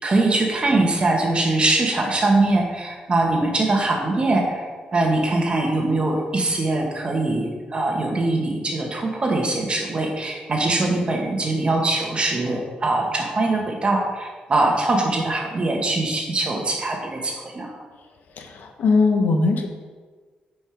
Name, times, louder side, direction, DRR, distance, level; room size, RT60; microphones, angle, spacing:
voice 1, 0.0-17.8, right 2 dB, 35° right, 1 dB, 1.8 m, -22 dB
voice 2, 18.4-19.7, left 3 dB, 70° left, 4 dB, 1.2 m, -20 dB
9.9 x 5.4 x 5.1 m, 1.4 s
cardioid pair, 105°, 3 cm